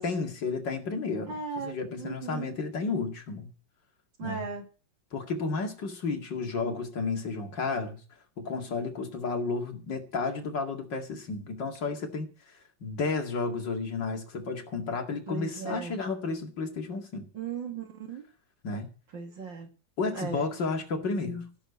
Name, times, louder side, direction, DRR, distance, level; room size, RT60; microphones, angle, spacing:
voice 1, 0.0-3.5 4.2-4.5 5.1-8.0 8.4-12.3 12.8-17.3 18.6-18.9 20.0-21.5, left 4 dB, 70° left, 2.9 m, -32 dB
voice 2, 1.3-2.6 4.2-4.7 15.3-16.0 17.3-18.2 19.1-19.7 20.1-20.5, right 5 dB, 80° right, 3.2 m, -37 dB
15.5 x 6.9 x 8.1 m
omnidirectional pair, 2.0 m